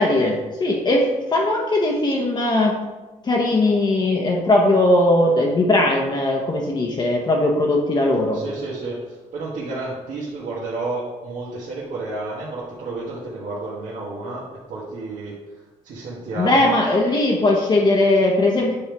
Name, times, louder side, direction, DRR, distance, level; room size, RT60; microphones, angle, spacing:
voice 1, 0.0-2.8 3.2-8.4 16.4-18.8, left 2 dB, 35° left, 0 dB, 0.9 m, -19 dB
voice 2, 8.3-9.0 9.3-14.4 14.7-15.3 15.8-16.7, right 2 dB, 85° right, -7 dB, 1.5 m, -30 dB
8.6 x 3.6 x 4.6 m, 1.2 s
cardioid pair, 125°, 13 cm